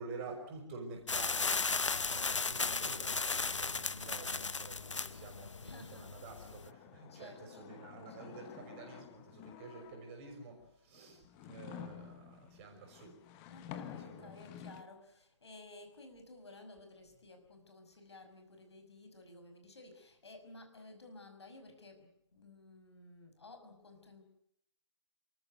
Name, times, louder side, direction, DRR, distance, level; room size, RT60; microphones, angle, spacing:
voice 1, 0.0-13.1 14.0-14.4, right 3 dB, 25° right, 3 dB, 5.9 m, -49 dB
sound 1, 1.1-6.7, left 4 dB, 75° left, 0.8 m, -36 dB
voice 2, 5.6-6.1 7.1-8.4 13.5-24.2, left 2 dB, 60° left, 7 dB, 5.9 m, -55 dB
sound 2, 6.0-10.4 10.9-14.8, left 9 dB, 15° left, 1.1 m, -51 dB
28.5 x 14.0 x 9.2 m, 0.76 s
figure-of-eight pair, 145°, 16 cm